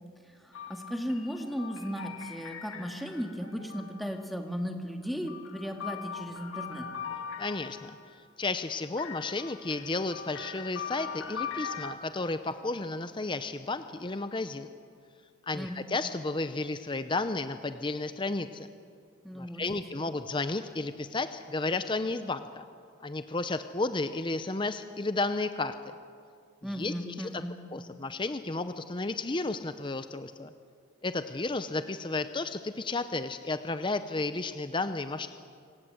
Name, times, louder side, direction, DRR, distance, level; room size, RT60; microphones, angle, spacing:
voice 1, 0.3-6.9 15.5-15.8 19.2-19.8 26.6-27.5, equal, ahead, 3 dB, 1.9 m, -36 dB
sound 1, 0.5-4.3 5.0-8.1 9.0-12.0, left 6 dB, 75° left, 2.3 m, -41 dB
voice 2, 7.4-7.9 8.4-14.7 15.5-18.7 19.4-22.6 23.0-25.7 26.6-27.4 27.7-30.5 31.0-35.3, left 3 dB, 25° left, 10 dB, 0.6 m, -32 dB
26.0 x 18.0 x 7.8 m, 2.2 s
head